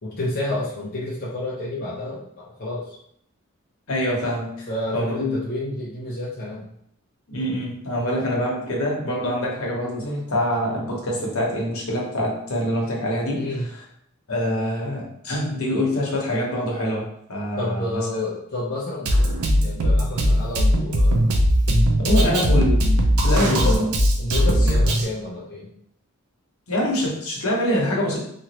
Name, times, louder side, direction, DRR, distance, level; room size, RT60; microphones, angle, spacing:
voice 1, 0.0-3.0 4.7-6.7 8.0-8.2 13.3-13.7 17.6-19.1 19.6-21.3 22.1-22.5 23.3-23.8 24.2-25.7, left 1 dB, 45° left, -6 dB, 0.5 m, -29 dB
voice 2, 3.9-4.5 4.9-5.4 7.3-13.4 14.3-18.0 22.0-22.8 23.2-23.8 26.7-28.2, equal, 75° left, -3 dB, 1.0 m, -25 dB
Drum kit, 19.1-25.1, equal, 80° right, 0.5 m, -19 dB
2.9 x 2.4 x 2.9 m, 0.71 s
head